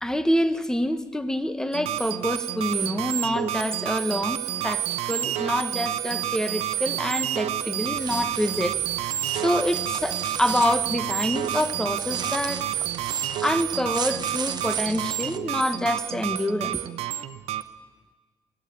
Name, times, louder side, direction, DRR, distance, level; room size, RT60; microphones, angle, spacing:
voice 1, 0.0-8.8 9.4-12.7 13.4-16.8, left 1 dB, 5° left, 11 dB, 1.2 m, -26 dB
sound 1, 1.7-17.6, right 12 dB, 90° right, 1.0 m, -29 dB
sound 2, 7.9-15.4, right 6 dB, 45° right, 1.2 m, -37 dB
23.5 x 17.0 x 8.5 m, 1.3 s
cardioid pair, 100°, 10 cm